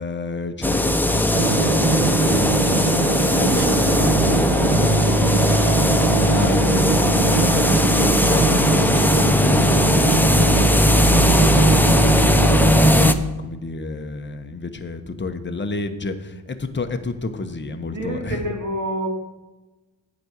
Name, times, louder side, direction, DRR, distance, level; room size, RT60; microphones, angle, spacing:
voice 1, 0.0-5.0 5.7-18.4, left 3 dB, 25° left, 7 dB, 1.0 m, -30 dB
sound 1, 0.6-13.1, left 1 dB, 5° left, 0.5 m, -18 dB
sound 2, 1.3-13.1, right 6 dB, 55° right, 1.0 m, -23 dB
voice 2, 17.8-19.1, equal, 40° right, 0 dB, 2.9 m, -27 dB
9.3 x 5.2 x 8.1 m, 1.1 s
cardioid pair, 85°, 47 cm